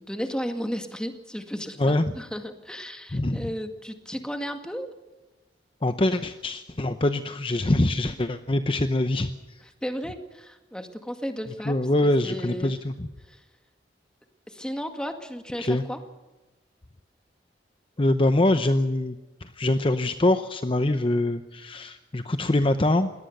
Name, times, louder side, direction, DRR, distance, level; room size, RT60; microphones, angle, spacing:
voice 1, 0.0-4.9 9.6-11.7 12.0-12.7 13.2-13.4 14.5-16.0, equal, 5° left, 6 dB, 2.0 m, -34 dB
voice 2, 1.8-2.1 3.1-3.4 5.8-9.3 11.7-13.1 15.6-15.8 18.0-19.1 19.6-23.1, left 1 dB, 30° left, 9 dB, 0.8 m, -24 dB
22.0 x 18.0 x 6.7 m, 1.1 s
head